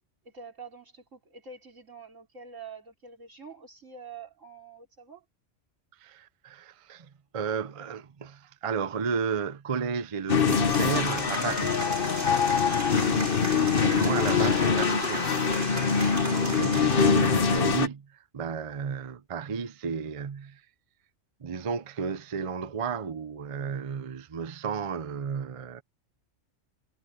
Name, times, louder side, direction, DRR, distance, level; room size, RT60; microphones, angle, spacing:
voice 1, 0.2-5.2 12.7-13.1 16.3-16.6, right 5 dB, 85° right, 4.7 m, -46 dB
voice 2, 6.0-11.8 13.8-15.3 16.5-18.1 18.3-20.6 21.4-25.8, right 6 dB, 35° right, 0.6 m, -33 dB
sound 1, 10.3-17.9, left 6 dB, 50° left, 1.2 m, -24 dB
Applause / Crowd, 10.4-17.6, right 2 dB, 60° right, 4.7 m, -36 dB
omnidirectional pair, 1.3 m